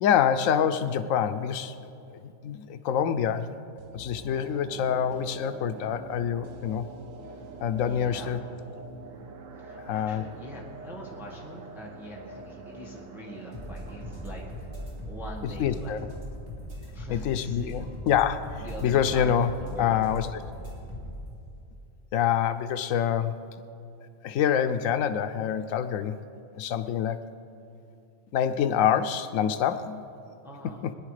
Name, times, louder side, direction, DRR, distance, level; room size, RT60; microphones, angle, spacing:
voice 1, 0.0-1.7 2.2-3.6 3.9-6.9 7.6-8.4 9.8-10.2 15.6-16.1 17.1-19.5 19.8-20.3 22.1-23.4 24.2-26.2 26.6-27.2 28.3-30.0 30.8-30.9, left 8 dB, 85° left, 10 dB, 1.0 m, -26 dB
sound 1, 3.8-16.9 17.2-17.3, right 4 dB, 85° right, 1.5 m, -45 dB
voice 2, 7.8-8.4 9.6-14.7 15.0-16.0 16.9-18.0 18.6-20.0 30.4-30.9, equal, ahead, -3 dB, 1.5 m, -43 dB
sound 2, 13.5-21.3, equal, 60° right, 3.3 m, -39 dB
20.0 x 10.5 x 4.9 m, 2.7 s
omnidirectional pair, 1.3 m